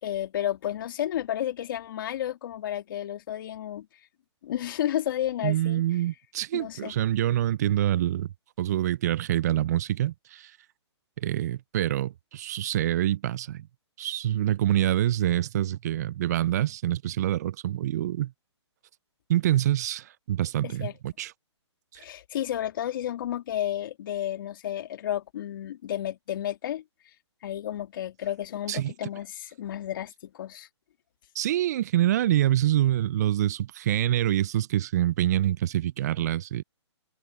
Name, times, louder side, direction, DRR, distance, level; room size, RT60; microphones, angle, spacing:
voice 1, 0.0-3.9 4.4-5.8 6.5-6.9 20.6-20.9 22.0-26.8 27.4-30.7, left 11 dB, 45° left, 2.8 m, -32 dB
voice 2, 5.4-8.3 8.6-10.5 11.2-13.7 14.0-18.3 19.3-21.3 28.7-28.9 31.4-36.6, right 12 dB, 35° right, 0.5 m, -26 dB
hypercardioid pair, 150°, 15 cm